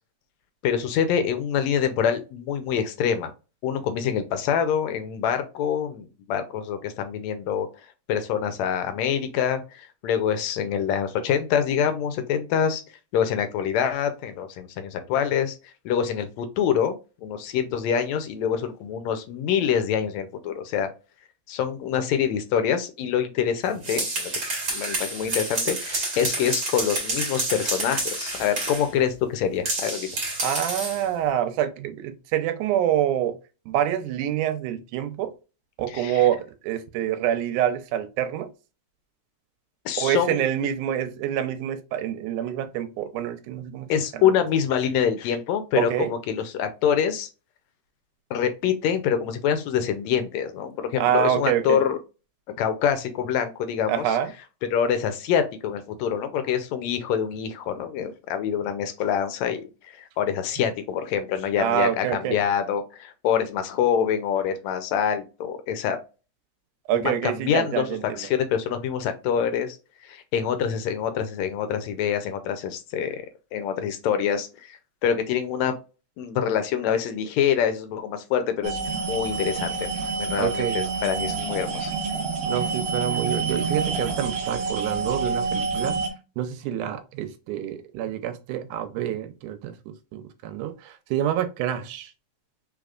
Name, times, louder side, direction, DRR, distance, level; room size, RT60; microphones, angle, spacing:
voice 1, 0.6-3.3 3.6-7.7 8.1-12.8 13.1-15.6 15.9-17.0 17.2-20.9 21.5-24.3 24.7-30.1 35.9-36.2 39.9-40.4 43.9-47.3 48.3-52.0 52.6-54.1 54.7-66.0 67.0-69.8 70.0-73.2 73.5-75.8 76.2-78.8 79.1-79.9 80.2-81.9, left 8 dB, 75° left, 1.8 m, -25 dB
sound 1, 23.7-28.9 29.6-31.0, right 2 dB, 40° right, 1.9 m, -29 dB
voice 2, 30.4-33.4 33.7-35.3 35.8-38.5 40.0-44.3 45.8-46.2 51.0-51.8 53.9-54.3 61.6-62.4 66.9-68.3 80.4-80.8 82.5-86.0 86.4-92.1, right 11 dB, 85° right, 2.2 m, -27 dB
sound 2, 78.6-86.1, right 4 dB, 65° right, 1.9 m, -28 dB
5.1 x 3.6 x 2.4 m
omnidirectional pair, 3.5 m